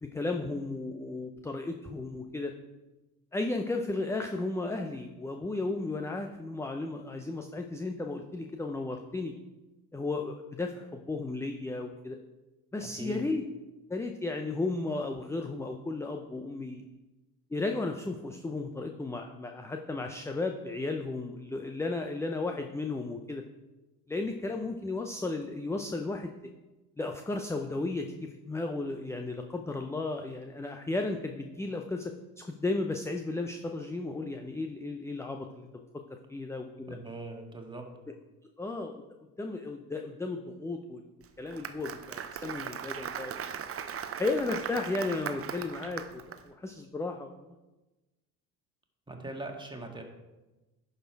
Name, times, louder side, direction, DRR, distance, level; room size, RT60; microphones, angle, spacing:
voice 1, 0.0-2.5 3.3-9.3 9.9-12.2 12.7-13.4 13.9-16.8 17.5-23.4 24.1-26.3 27.0-35.7 36.1-37.0 38.6-39.0 39.4-41.0 41.4-43.4 44.1-47.5, left 2 dB, 5° left, 5 dB, 0.5 m, -34 dB
voice 2, 36.9-37.8 49.1-50.0, right 2 dB, 10° right, 2 dB, 1.7 m, -40 dB
Applause, 41.2-46.4, right 8 dB, 30° right, 0.7 m, -38 dB
11.0 x 4.4 x 4.6 m, 1.1 s
hypercardioid pair, 65°, 48 cm